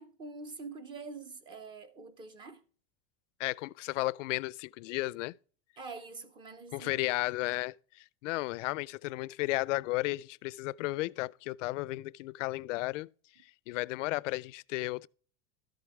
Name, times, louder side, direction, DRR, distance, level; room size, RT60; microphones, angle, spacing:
voice 1, 0.0-2.6 5.8-6.9, right 4 dB, 15° right, 0.4 m, -45 dB
voice 2, 3.4-5.3 6.7-13.1 13.4-15.1, left 20 dB, 85° left, 0.5 m, -34 dB
13.0 x 7.9 x 3.4 m
supercardioid pair, 170°, 36 cm